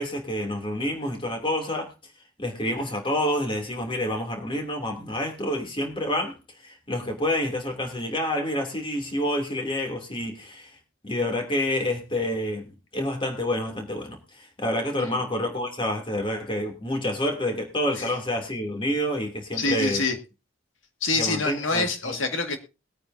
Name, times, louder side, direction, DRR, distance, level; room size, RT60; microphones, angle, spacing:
voice 1, 0.0-1.9 2.4-10.8 11.0-20.0 21.2-22.1, left 1 dB, 25° left, 3 dB, 2.8 m, -28 dB
voice 2, 19.5-20.2 21.0-22.6, left 3 dB, 70° left, 5 dB, 2.0 m, -26 dB
21.0 x 9.2 x 2.7 m, 0.30 s
head